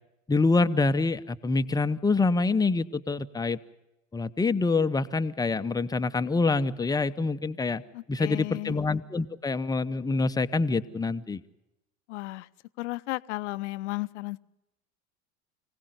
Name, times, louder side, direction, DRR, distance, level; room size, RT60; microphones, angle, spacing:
voice 1, 0.3-3.6 4.1-7.8 8.1-11.4, left 3 dB, 10° left, 11 dB, 0.8 m, -26 dB
voice 2, 7.9-8.8 12.1-12.5 12.8-14.4, left 20 dB, 60° left, 15 dB, 0.8 m, -34 dB
24.5 x 17.5 x 8.0 m, 0.93 s
figure-of-eight pair, 75°, 40 cm